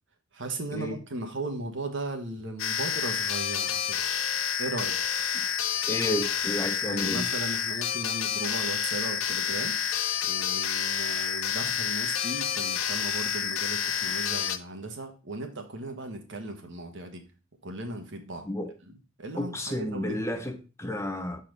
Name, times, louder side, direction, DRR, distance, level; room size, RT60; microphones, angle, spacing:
voice 1, 0.3-4.0 4.6-5.0 6.8-9.8 10.2-17.2 17.6-18.5 19.2-20.4, right 2 dB, 60° right, 1.4 m, -37 dB
sound 1, 2.6-14.6, left 8 dB, 85° left, 0.7 m, -29 dB
voice 2, 5.9-7.3 18.4-18.7 19.4-21.4, left 1 dB, 15° left, 0.8 m, -31 dB
6.5 x 4.2 x 5.3 m
head